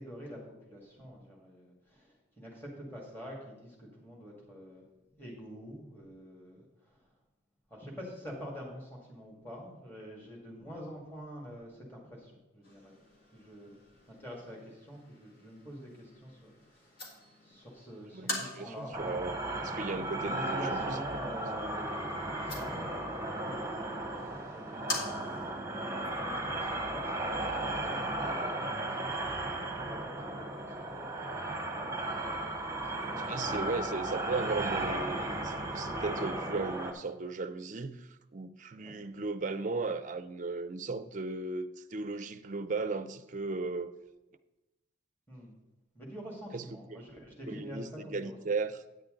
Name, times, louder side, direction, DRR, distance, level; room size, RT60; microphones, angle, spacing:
voice 1, 0.0-4.8 5.1-7.1 7.7-12.9 13.3-13.7 14.1-19.0 20.1-32.4 32.7-33.8 38.7-39.1 45.3-45.6 45.9-48.4, equal, 10° left, 1.9 m, -47 dB
sound 1, 12.6-25.6, left 2 dB, 50° left, 1.9 m, -45 dB
voice 2, 18.1-19.3 19.6-21.0 33.3-43.9 46.5-46.6 46.9-48.8, right 3 dB, 40° right, 0.4 m, -36 dB
sound 2, 18.9-36.9, right 1 dB, 15° right, 1.0 m, -35 dB
9.3 x 8.6 x 3.8 m
head